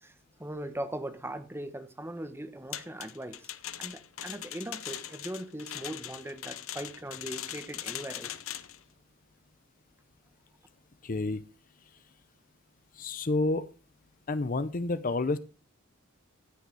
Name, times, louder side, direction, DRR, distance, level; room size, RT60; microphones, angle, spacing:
voice 1, 0.4-3.5 3.8-8.3, right 1 dB, 10° right, 1.2 m, -39 dB
sound 1, 2.7-8.8, left 12 dB, 75° left, 0.8 m, -40 dB
voice 2, 11.0-11.4 11.8-12.0 12.9-13.7 14.3-15.4, left 2 dB, 40° left, 0.6 m, -29 dB
14.5 x 6.6 x 4.8 m
head